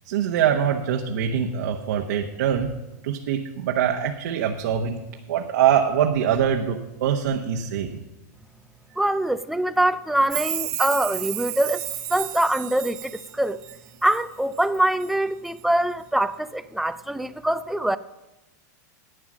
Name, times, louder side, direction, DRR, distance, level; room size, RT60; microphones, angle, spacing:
voice 1, 0.1-2.7 3.0-5.0 5.3-8.0, right 9 dB, 70° right, 2 dB, 1.0 m, -23 dB
voice 2, 9.0-11.8 12.1-13.6 14.0-18.0, right 1 dB, ahead, 13 dB, 0.3 m, -24 dB
Chime, 10.3-14.2 14.6-15.1 15.5-15.6, right 16 dB, 35° right, 0.8 m, -32 dB
11.0 x 8.9 x 6.1 m, 1.0 s
supercardioid pair, 150°, 10 cm